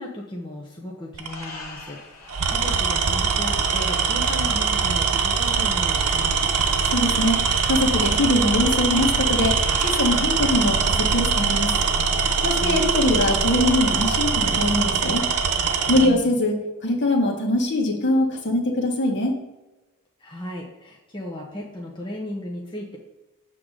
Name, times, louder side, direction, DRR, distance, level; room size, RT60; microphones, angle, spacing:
voice 1, 0.0-6.6 12.6-12.8 16.0-16.4 20.2-23.0, left 1 dB, 20° left, -2 dB, 0.9 m, -35 dB
Tools, 1.1-1.4 2.3-16.1, right 5 dB, 85° right, 0.9 m, -22 dB
sound 1, 1.2-10.1, left 3 dB, 80° left, 2.3 m, -42 dB
voice 2, 6.9-11.7 12.4-15.2 15.9-16.5 16.8-19.3, left 1 dB, 50° left, 0 dB, 1.6 m, -22 dB
7.7 x 3.7 x 6.6 m, 1.1 s
head